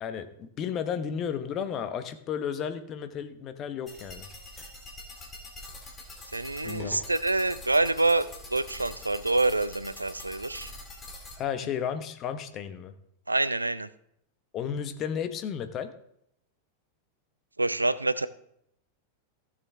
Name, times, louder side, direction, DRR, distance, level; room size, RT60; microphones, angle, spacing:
voice 1, 0.0-4.3 6.6-6.9 11.4-12.9 14.5-15.9, left 8 dB, 35° left, 9 dB, 1.0 m, -33 dB
sound 1, 3.9-11.4, left 2 dB, 15° left, 2.4 m, -45 dB
voice 2, 6.3-10.7 13.3-13.9 17.6-18.3, right 2 dB, 85° right, 16 dB, 0.4 m, -26 dB
15.5 x 6.8 x 3.5 m, 0.73 s
figure-of-eight pair, 90°, 0 cm